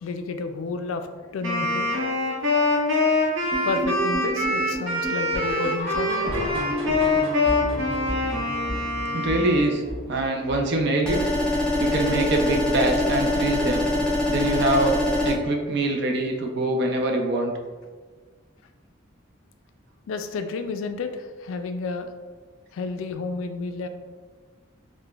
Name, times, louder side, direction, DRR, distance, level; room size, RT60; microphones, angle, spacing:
voice 1, 0.0-1.9 3.6-6.6 7.4-7.6 9.1-9.2 20.1-22.1 22.7-23.9, left 3 dB, 80° left, 8 dB, 0.3 m, -31 dB
Wind instrument woodwind instrument, 1.4-9.8, left 2 dB, 70° right, 0.9 m, -24 dB
sound 1, 3.5-12.6 12.9-13.2 13.5-13.6 14.1-14.2 14.7-14.8, right 1 dB, 30° right, 0.8 m, -33 dB
voice 2, 9.1-9.8 10.1-11.2 11.8-13.9 14.3-15.0 15.2-17.5, right 2 dB, 55° right, 2 dB, 0.4 m, -24 dB
sound 2, 11.0-15.3, left 1 dB, 5° left, 0.6 m, -24 dB
4.9 x 2.1 x 2.3 m, 1.4 s
head